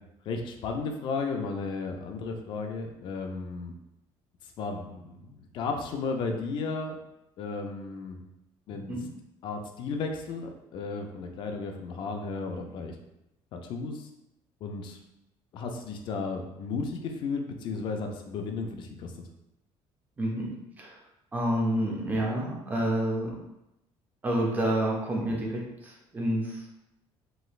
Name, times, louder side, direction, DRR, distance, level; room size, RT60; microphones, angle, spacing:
voice 1, 0.3-3.7 4.6-7.0 7.4-8.2 8.7-9.0 9.4-12.9 13.5-14.1 14.6-15.0 15.5-19.1, left 4 dB, 45° left, 4 dB, 0.4 m, -34 dB
voice 2, 21.3-23.3 24.2-26.6, right 1 dB, 15° right, -2 dB, 0.6 m, -28 dB
3.1 x 3.0 x 2.3 m, 0.89 s
cardioid pair, 165°, 11 cm